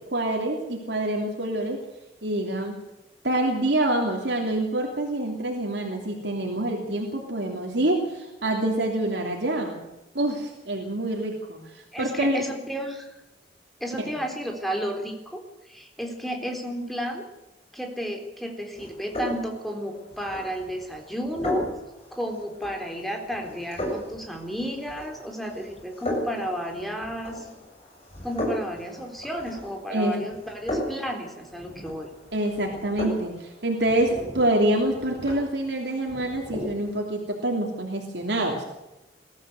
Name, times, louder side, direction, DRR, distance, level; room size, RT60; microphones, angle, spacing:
voice 1, 0.1-1.8 2.2-2.8 3.2-9.8 10.1-12.4 14.0-14.1 29.9-30.2 32.3-38.6, right 1 dB, 80° right, 1 dB, 3.1 m, -26 dB
voice 2, 11.9-13.1 13.8-17.2 17.7-21.7 22.1-27.5 28.2-32.1, equal, ahead, 2 dB, 3.7 m, -32 dB
sound 1, 18.7-37.0, left 1 dB, 35° left, 7.7 m, -36 dB
21.5 x 15.0 x 8.1 m, 1.0 s
head